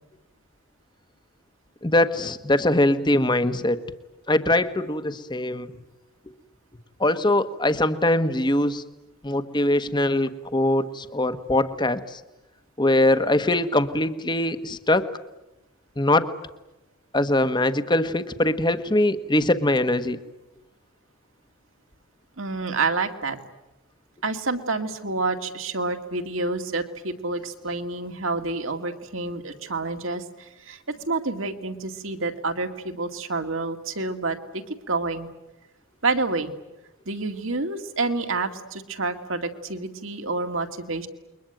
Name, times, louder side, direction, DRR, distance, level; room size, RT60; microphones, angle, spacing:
voice 1, 1.8-3.8 4.3-5.7 7.0-8.8 9.2-12.2 12.8-15.1 16.0-16.3 17.1-20.2, left 1 dB, 20° left, 11 dB, 1.2 m, -22 dB
voice 2, 22.4-23.4 24.2-35.3 36.0-36.5 37.1-41.1, right 3 dB, 70° right, 6 dB, 2.3 m, -28 dB
28.5 x 22.5 x 9.2 m, 0.98 s
head